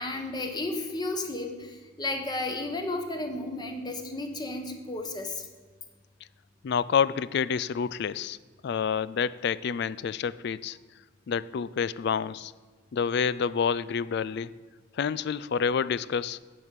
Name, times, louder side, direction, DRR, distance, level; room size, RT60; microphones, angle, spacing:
voice 1, 0.0-5.5, left 2 dB, 20° left, 4 dB, 1.1 m, -33 dB
voice 2, 6.6-8.4 8.6-10.8 11.3-12.5 12.9-14.5 14.9-16.4, left 6 dB, 55° left, 18 dB, 0.3 m, -28 dB
8.1 x 7.8 x 7.4 m, 1.4 s
head